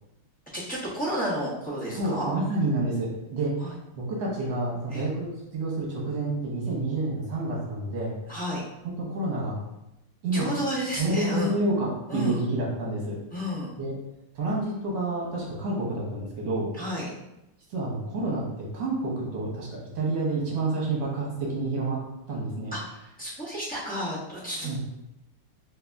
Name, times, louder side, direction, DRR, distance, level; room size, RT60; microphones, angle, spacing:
voice 1, 0.5-2.3 3.6-3.7 4.9-5.1 8.3-8.6 10.3-11.5 12.1-12.4 13.3-13.7 16.8-17.1 22.7-24.7, equal, 10° left, -9 dB, 0.6 m, -31 dB
voice 2, 1.9-3.6 3.9-8.1 8.8-9.6 10.2-10.5 11.0-13.2 13.8-13.9 14.3-16.7 17.7-19.7 19.9-22.0 22.3-22.7 24.6-24.8, right 2 dB, 60° right, -4 dB, 1.7 m, -29 dB
3.9 x 2.8 x 3.5 m, 0.91 s
omnidirectional pair, 2.4 m